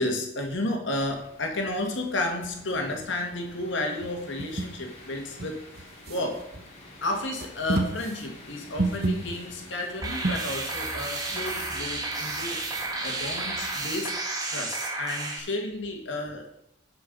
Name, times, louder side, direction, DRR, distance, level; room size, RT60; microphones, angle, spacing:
voice 1, 0.0-5.6 6.1-6.5 7.0-12.7 13.0-14.2 14.5-16.5, left 2 dB, 65° left, 3 dB, 1.9 m, -32 dB
sound 1, 0.9-14.1, left 1 dB, 35° left, 2.1 m, -49 dB
sound 2, 2.4-3.7 3.9-4.8 5.3-6.7 7.1-10.7 11.1-12.3, right 2 dB, 50° right, 1.0 m, -32 dB
sound 3, 10.0-15.4, right 2 dB, 20° right, 1.2 m, -32 dB
9.8 x 6.0 x 5.4 m, 0.82 s
head